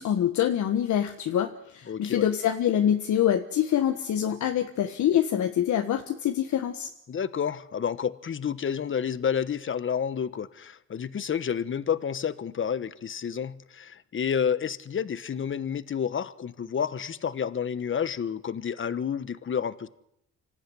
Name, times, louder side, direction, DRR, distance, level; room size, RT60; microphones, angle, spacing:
voice 1, 0.0-6.9, left 10 dB, 70° left, 1.5 m, -25 dB
voice 2, 1.9-2.3 7.1-19.9, left 7 dB, 40° left, 1.2 m, -30 dB
26.0 x 14.0 x 9.9 m
cardioid pair, 90°, 30 cm